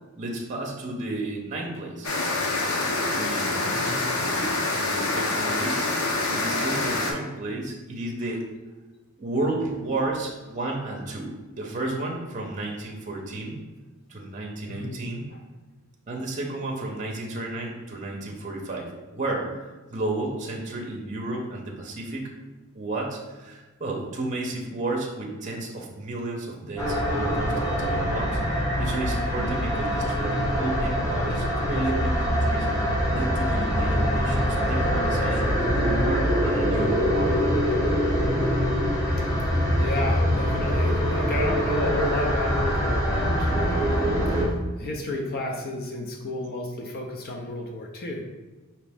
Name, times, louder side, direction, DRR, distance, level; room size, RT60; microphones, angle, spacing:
voice 1, 0.2-2.2 3.1-3.7 4.1-4.5 4.8-8.5 9.2-13.6 14.1-15.3 16.1-22.3 22.7-37.8, right 2 dB, 35° right, 0 dB, 0.6 m, -32 dB
sound 1, 2.0-7.1, left 2 dB, 85° left, 0.8 m, -26 dB
voice 2, 3.6-4.0 14.7-15.0 15.3-15.4 29.3-29.6 31.3-31.4 39.2-39.4 39.8-48.2, left 1 dB, 45° left, 1 dB, 0.6 m, -32 dB
sound 2, 26.8-44.5, equal, 15° left, 1.1 m, -24 dB
5.0 x 2.9 x 3.4 m, 1.2 s
head